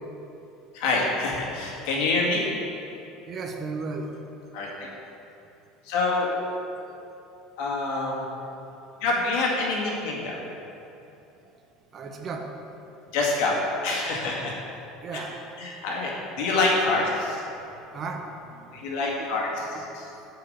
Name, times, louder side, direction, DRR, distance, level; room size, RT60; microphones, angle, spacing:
voice 1, 0.7-2.4 4.5-4.7 5.9-6.3 7.6-8.3 9.0-10.4 13.1-13.5 13.8-14.5 15.1-15.2 15.6-16.1 16.4-17.4 18.7-20.1, left 3 dB, 75° left, -3 dB, 2.1 m, -26 dB
voice 2, 3.3-4.1 11.9-12.5 15.0-15.4 17.9-18.2 19.7-19.8, right 4 dB, 40° right, 3 dB, 0.9 m, -34 dB
8.7 x 5.0 x 6.6 m, 2.9 s
supercardioid pair, 120°, 0 cm